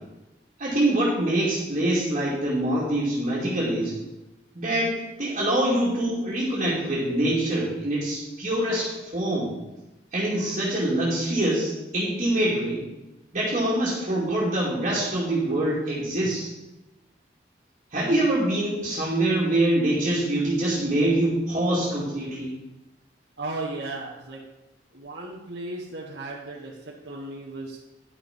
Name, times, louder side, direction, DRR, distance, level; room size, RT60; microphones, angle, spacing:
voice 1, 0.6-3.9 4.5-9.5 10.1-12.8 13.3-16.5 17.9-22.5, right 1 dB, 40° right, -7 dB, 2.6 m, -24 dB
voice 2, 23.4-24.4 24.9-27.8, right 2 dB, 80° right, -6 dB, 1.5 m, -35 dB
11.0 x 6.3 x 5.3 m, 1.0 s
head